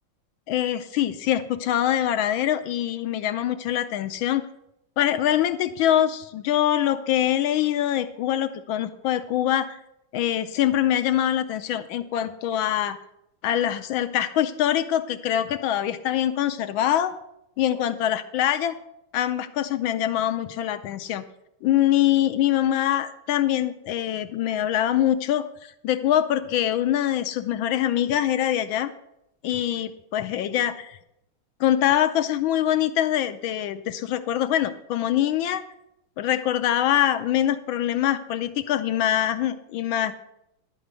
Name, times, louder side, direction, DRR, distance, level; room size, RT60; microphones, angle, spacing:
voice 1, 0.5-4.5 5.0-9.8 10.1-13.0 13.4-17.1 17.6-18.8 19.1-21.2 21.6-28.9 29.4-31.0 31.6-35.6 36.2-40.1, left 11 dB, 75° left, 10 dB, 1.3 m, -24 dB
11.5 x 5.0 x 8.1 m, 0.81 s
omnidirectional pair, 2.4 m